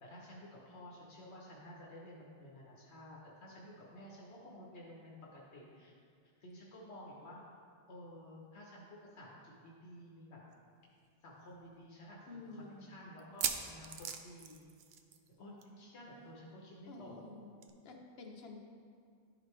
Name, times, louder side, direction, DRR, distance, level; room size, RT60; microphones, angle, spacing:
voice 1, 0.0-5.9 6.4-7.4 7.9-10.4 11.2-14.6 15.4-17.1, left 1 dB, 90° left, -4 dB, 1.3 m, -52 dB
sound 1, 10.5-10.6 10.9-11.0 11.6-11.7 13.2-15.3 15.6-16.1 17.6-17.7, right 8 dB, 70° right, 0.8 m, -39 dB
voice 2, 12.3-13.0 16.9-17.6 17.8-18.6, left 3 dB, 70° left, 2 dB, 1.1 m, -50 dB
11.5 x 5.0 x 3.2 m, 2.2 s
omnidirectional pair, 1.1 m